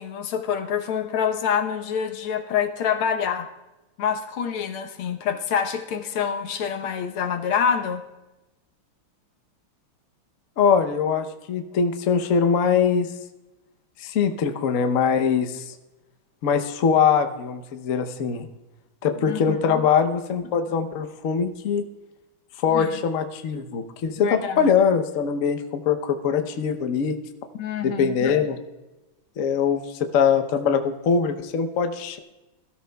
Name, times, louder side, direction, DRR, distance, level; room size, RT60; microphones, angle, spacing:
voice 1, 0.0-3.5 4.0-8.0 19.3-19.8 22.7-23.0 24.2-24.7 27.6-28.3, left 7 dB, 80° left, 5 dB, 1.8 m, -26 dB
voice 2, 10.6-13.1 14.0-15.7 16.4-18.5 19.0-21.8 22.6-27.1 27.8-28.6 29.4-32.2, left 6 dB, 55° left, 7 dB, 0.9 m, -22 dB
21.0 x 13.0 x 2.3 m, 1.0 s
omnidirectional pair, 2.3 m